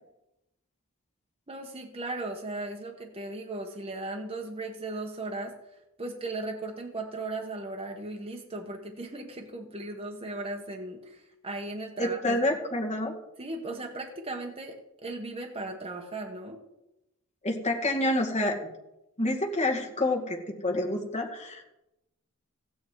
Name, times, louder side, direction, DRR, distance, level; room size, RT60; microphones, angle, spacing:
voice 1, 1.5-5.5 6.0-12.4 13.4-16.6, right 2 dB, 25° right, 1 dB, 1.2 m, -37 dB
voice 2, 12.0-13.1 17.4-18.6 19.2-21.7, left 1 dB, 30° left, 0 dB, 2.1 m, -28 dB
15.5 x 9.3 x 4.7 m, 0.92 s
head